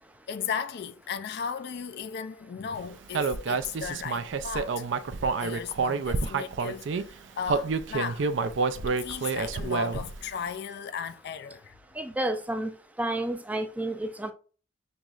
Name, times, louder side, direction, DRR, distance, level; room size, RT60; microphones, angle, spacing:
voice 1, 0.3-4.8 5.4-8.3 8.9-11.7, left 7 dB, 55° left, 0.4 m, -36 dB
Human voice, 3.1-7.0 7.5-10.2, right 4 dB, 65° right, 0.4 m, -28 dB
voice 2, 12.0-12.7 13.0-14.3, right 1 dB, 10° right, 0.4 m, -30 dB
6.5 x 3.0 x 2.4 m
head